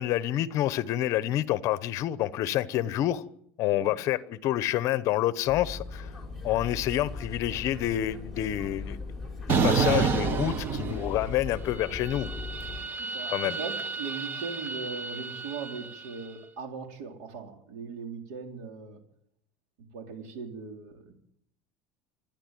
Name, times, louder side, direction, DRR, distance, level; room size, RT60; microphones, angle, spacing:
voice 1, 0.0-3.3 3.6-6.1 6.4-9.0 9.5-12.3 13.3-13.6, left 13 dB, 40° left, 0.9 m, -28 dB
sound 1, 5.5-12.8, left 3 dB, 5° left, 4.4 m, -39 dB
sound 2, 9.5-11.5 11.8-16.1, right 5 dB, 25° right, 1.1 m, -30 dB
voice 2, 13.0-19.0 19.9-21.1, right 5 dB, 70° right, 3.7 m, -39 dB
27.0 x 10.5 x 9.3 m
cardioid pair, 170°, 8 cm